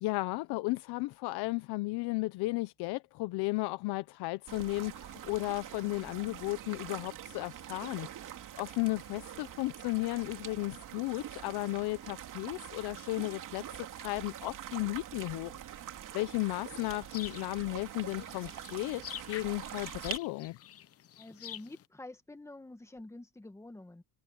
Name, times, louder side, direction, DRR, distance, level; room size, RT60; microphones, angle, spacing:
voice 1, 0.0-8.3 8.6-15.9 16.1-19.0 19.3-20.6, left 22 dB, 75° left, 0.8 m, -34 dB
sound 1, 4.5-20.2, right 11 dB, 55° right, 2.7 m, -45 dB
sound 2, 16.7-21.8, left 11 dB, 40° left, 0.8 m, -47 dB
voice 2, 21.2-24.0, left 2 dB, 5° left, 1.9 m, -48 dB
cardioid pair, 135°, 38 cm